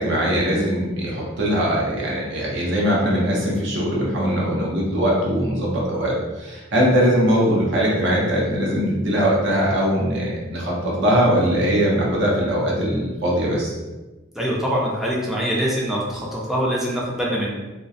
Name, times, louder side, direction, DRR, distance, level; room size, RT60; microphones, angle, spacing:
voice 1, 0.0-13.7, equal, 65° right, -4 dB, 0.6 m, -21 dB
voice 2, 14.3-17.5, equal, ahead, -4 dB, 0.4 m, -24 dB
2.3 x 2.1 x 2.6 m, 1.2 s
head